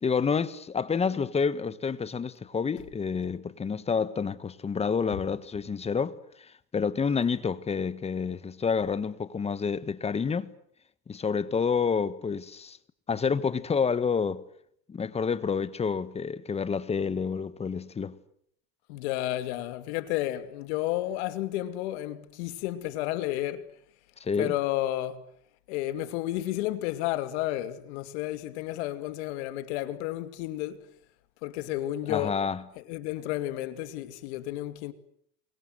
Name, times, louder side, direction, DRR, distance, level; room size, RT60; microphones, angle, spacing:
voice 1, 0.0-6.2 6.7-10.5 11.1-12.8 13.1-14.4 14.9-18.2 24.2-24.5 32.1-32.6, left 6 dB, 20° left, 1.4 m, -28 dB
voice 2, 18.9-23.7 24.4-25.3 25.7-30.8 31.4-32.4 32.8-34.9, left 14 dB, 75° left, 2.6 m, -32 dB
29.0 x 23.0 x 8.1 m
supercardioid pair, 130°, 34 cm